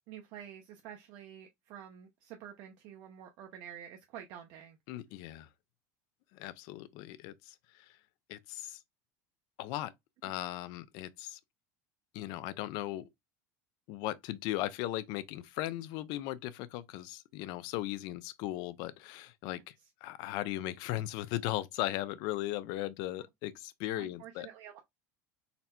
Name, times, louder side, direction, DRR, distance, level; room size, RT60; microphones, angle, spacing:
voice 1, 0.1-4.8 10.2-10.3 24.0-24.8, right 9 dB, 65° right, 0.7 m, -49 dB
voice 2, 4.9-5.5 6.3-7.9 8.3-8.8 9.6-9.9 10.2-11.4 12.1-13.1 13.9-19.7 20.0-24.5, left 15 dB, 65° left, 0.5 m, -37 dB
4.1 x 2.1 x 4.2 m
supercardioid pair, 115°, 8 cm